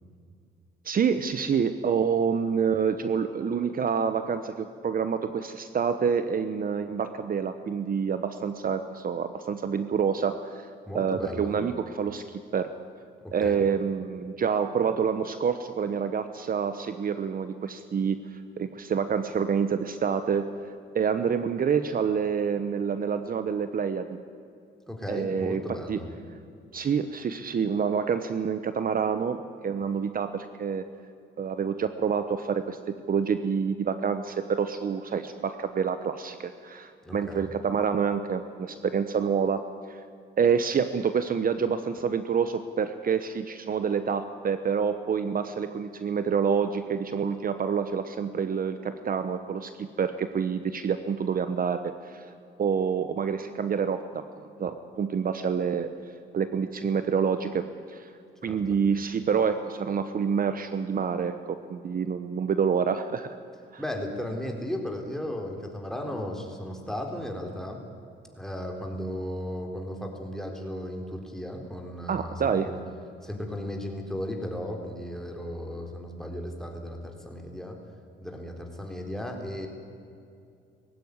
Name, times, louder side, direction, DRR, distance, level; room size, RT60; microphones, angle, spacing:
voice 1, 0.8-12.7 13.3-20.5 20.9-24.2 25.1-25.6 25.9-26.0 26.7-29.4 29.6-30.8 31.4-40.0 40.4-52.3 52.6-55.9 56.3-58.1 58.4-63.4 63.7-63.8 72.1-72.7, right 6 dB, 45° right, 10 dB, 1.0 m, -27 dB
voice 2, 10.9-11.5 13.2-13.7 24.9-26.1 37.0-37.5 58.5-58.6 63.8-67.8 68.3-72.8 73.2-77.8 78.2-79.7, equal, ahead, 1 dB, 4.0 m, -35 dB
19.5 x 16.0 x 9.7 m, 2.5 s
cardioid pair, 90°, 20 cm